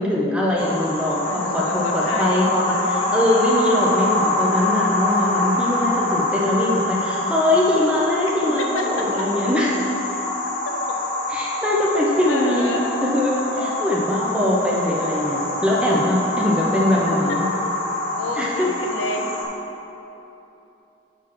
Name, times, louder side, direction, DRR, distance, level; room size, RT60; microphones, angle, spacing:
voice 1, 0.0-10.0 11.3-17.5 18.4-18.7, left 1 dB, 5° right, -4 dB, 0.7 m, -22 dB
sound 1, 0.6-19.4, left 2 dB, 45° left, 1.1 m, -25 dB
voice 2, 1.2-3.4 5.4-5.7 8.3-9.3 10.7-10.8 12.3-12.9 13.4-13.9 17.1-17.6 18.1-19.3, left 2 dB, 85° left, 1 dB, 0.9 m, -31 dB
7.7 x 4.7 x 6.0 m, 3.0 s
head